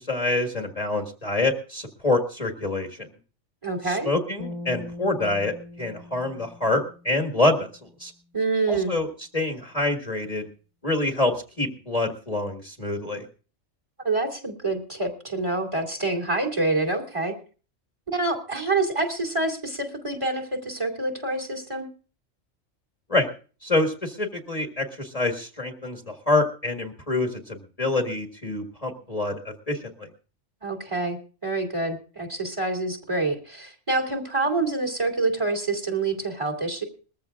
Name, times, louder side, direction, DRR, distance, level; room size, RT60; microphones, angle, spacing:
voice 1, 0.0-3.1 3.8-7.7 8.0-8.1 8.7-9.1 9.3-10.5 10.8-13.2 23.1-23.3 23.6-29.8, left 2 dB, 30° left, 3 dB, 1.7 m, -26 dB
voice 2, 3.6-4.1 8.3-8.9 14.0-17.3 18.1-21.9 30.6-31.2 31.4-36.8, right 3 dB, 25° right, 4 dB, 2.6 m, -27 dB
sound 1, 4.4-7.7, left 2 dB, 85° right, 3.3 m, -41 dB
21.5 x 15.0 x 2.4 m, 0.38 s
omnidirectional pair, 1.3 m